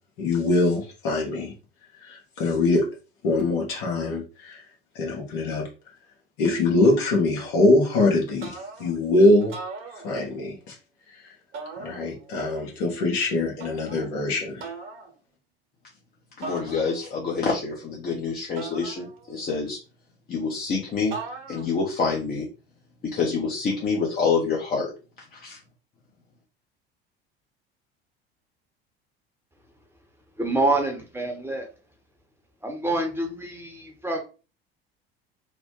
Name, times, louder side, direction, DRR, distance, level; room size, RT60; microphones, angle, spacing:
voice 1, 0.2-1.5 1.9-2.9 3.2-4.6 4.9-5.7 6.4-9.5 10.0-10.8 11.1-11.4 11.8-14.7, left 2 dB, 60° left, -1 dB, 1.2 m, -23 dB
sound 1, 8.4-9.0 9.4-10.5 11.5-12.4 13.6-14.1 14.6-15.1 16.4-17.3 18.6-19.5 21.1-21.9, right 4 dB, 40° right, 1.0 m, -39 dB
voice 2, 16.4-19.8 20.3-21.1 21.5-22.5 23.0-24.9 25.2-25.6, left 5 dB, 30° left, -2 dB, 0.8 m, -27 dB
voice 3, 30.4-31.7 32.6-34.2, right 2 dB, 10° right, 2 dB, 0.8 m, -26 dB
3.1 x 2.1 x 3.0 m, 0.33 s
figure-of-eight pair, 70°, 30 cm